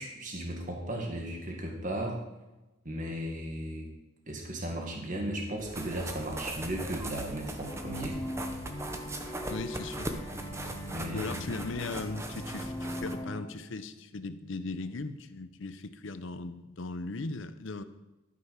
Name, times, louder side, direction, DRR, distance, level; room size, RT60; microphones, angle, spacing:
voice 1, 0.0-2.2 2.9-3.9 4.3-8.2 10.0-10.2 10.9-11.6, right 1 dB, 40° right, 1 dB, 1.8 m, -36 dB
sound 1, 5.6-13.1, right 1 dB, 15° right, 0.7 m, -40 dB
sound 2, 7.6-13.4, equal, 15° left, 1.1 m, -40 dB
voice 2, 9.5-10.2 11.1-17.8, left 3 dB, 60° left, 12 dB, 0.6 m, -38 dB
12.5 x 5.9 x 5.6 m, 1.0 s
head